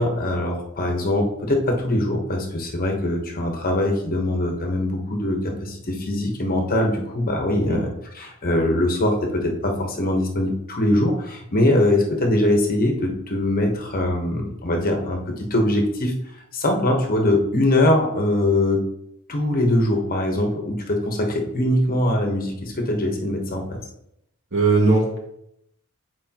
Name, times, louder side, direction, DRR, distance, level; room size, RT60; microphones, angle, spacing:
voice 1, 0.0-7.9 8.1-16.1 16.5-18.8 19.3-23.8, left 1 dB, 40° left, 2 dB, 1.1 m, -22 dB
voice 2, 24.5-25.2, right 3 dB, 55° right, -2 dB, 2.1 m, -19 dB
8.2 x 4.7 x 2.9 m, 0.77 s
head